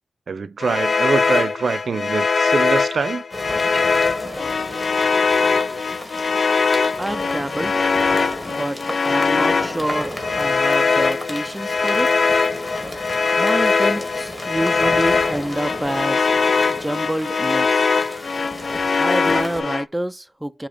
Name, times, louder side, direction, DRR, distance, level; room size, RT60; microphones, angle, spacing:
voice 1, 0.3-3.2, right 5 dB, 65° right, 0.6 m, -24 dB
sound 1, 0.6-19.9, left 4 dB, 55° left, 0.4 m, -21 dB
sound 2, 3.3-19.6, equal, 15° left, 2.4 m, -34 dB
voice 2, 7.0-7.8 8.5-12.1 13.4-16.3 16.7-17.9 19.0-20.7, right 1 dB, 10° right, 0.4 m, -27 dB
6.8 x 2.9 x 5.0 m
cardioid pair, 60°, 0 cm